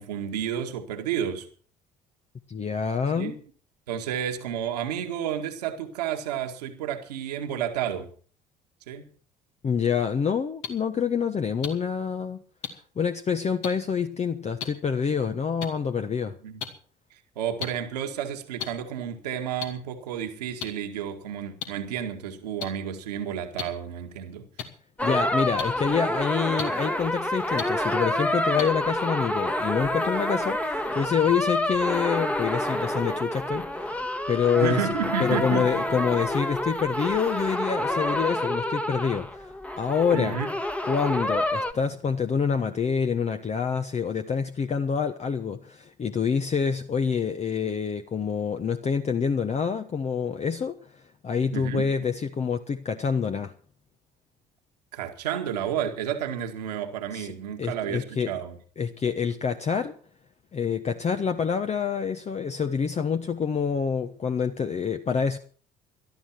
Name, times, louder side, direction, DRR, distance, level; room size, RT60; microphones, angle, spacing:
voice 1, 0.0-1.5 3.1-3.3 3.9-8.1 8.9-9.1 16.4-16.6 17.4-24.5 34.6-35.7 40.1-40.5 51.5-51.9 54.9-58.5, right 9 dB, 80° right, 5 dB, 1.9 m, -31 dB
voice 2, 2.5-3.4 9.6-12.4 12.7-16.4 25.0-34.9 35.2-40.4 40.9-50.8 51.2-53.5 57.1-57.3 57.6-58.4 58.8-59.9 60.5-65.4, left 6 dB, 35° left, 7 dB, 1.1 m, -27 dB
sound 1, 10.6-10.7 11.6-11.7 12.6-12.7 13.6-13.7 14.6-14.7 15.6-15.7 16.6-16.7 17.6-17.7 18.6-18.7 19.6-19.7 20.6-20.7 21.6-21.7 22.6-22.7 23.6-23.7 24.6-24.7 25.6-25.7 26.6-26.7 27.6-27.7 28.6-28.7, left 7 dB, 65° left, 2.5 m, -31 dB
sound 2, 25.0-41.7, left 1 dB, 5° left, 1.4 m, -28 dB
17.5 x 12.5 x 4.6 m, 0.43 s
figure-of-eight pair, 55°, 20 cm